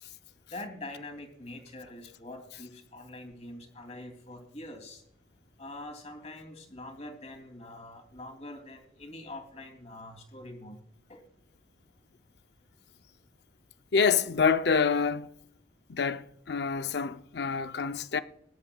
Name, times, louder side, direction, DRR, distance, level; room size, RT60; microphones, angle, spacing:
voice 1, 0.5-5.0 5.6-10.8 11.1-11.2, left 1 dB, 35° left, 2.7 m, -44 dB
voice 2, 13.9-15.3 15.9-18.2, left 5 dB, 60° left, 0.5 m, -27 dB
21.5 x 11.0 x 2.3 m
head